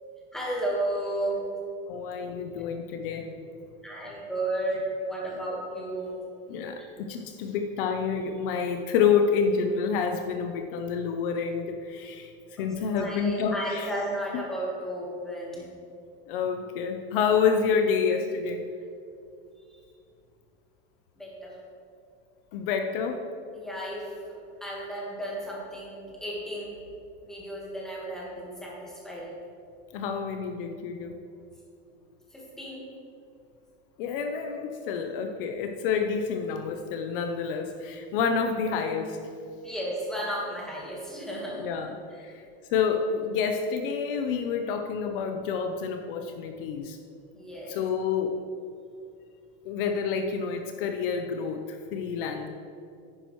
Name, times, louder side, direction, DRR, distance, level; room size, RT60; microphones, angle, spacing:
voice 1, 0.3-1.5 3.8-6.1 6.8-6.9 12.6-15.7 19.6-19.8 21.2-21.6 23.5-26.8 27.2-29.3 32.3-32.9 39.6-41.7 42.1-42.2 47.3-47.8, right 1 dB, ahead, -5 dB, 1.4 m, -34 dB
voice 2, 1.9-3.3 6.5-13.9 14.3-14.5 16.3-18.6 22.5-23.2 29.9-31.1 34.0-39.2 41.5-42.4 42.7-47.0 47.7-48.4 49.6-52.5, left 6 dB, 55° left, 5 dB, 0.7 m, -28 dB
10.0 x 9.8 x 3.1 m, 2.5 s
supercardioid pair, 180°, 31 cm